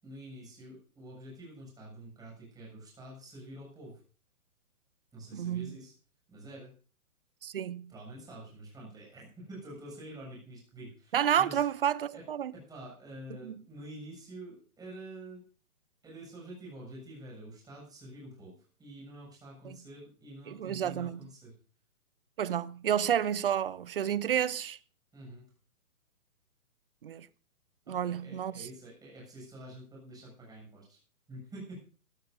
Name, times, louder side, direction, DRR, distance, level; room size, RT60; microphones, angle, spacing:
voice 1, 0.0-4.0 5.1-5.9 6.3-6.7 7.9-11.6 12.1-12.2 12.5-15.4 16.0-21.6 25.1-25.4 27.9-31.0 31.3-31.8, right 1 dB, 10° right, 7.2 m, -47 dB
voice 2, 5.3-5.8 7.4-7.9 11.1-12.5 13.4-13.6 19.6-19.8 20.5-21.2 22.4-24.8 27.0-27.3 27.9-28.7, right 9 dB, 40° right, 0.6 m, -30 dB
18.0 x 16.5 x 2.7 m
figure-of-eight pair, 130°, 45 cm